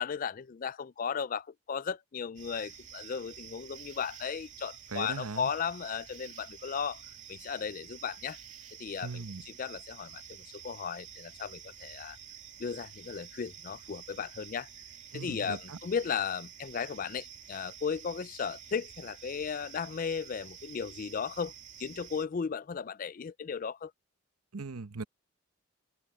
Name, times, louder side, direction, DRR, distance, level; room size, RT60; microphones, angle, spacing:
voice 1, 0.0-7.0 7.3-8.4 8.8-12.2 12.6-14.7 15.1-21.5 21.8-23.9, left 6 dB, 40° left, 0.3 m, -36 dB
sound 1, 2.4-22.3, right 8 dB, 35° right, 2.8 m, -49 dB
voice 2, 4.9-5.5 9.0-9.4 15.1-15.8 24.5-25.0, right 4 dB, 90° right, 1.0 m, -39 dB
open air
head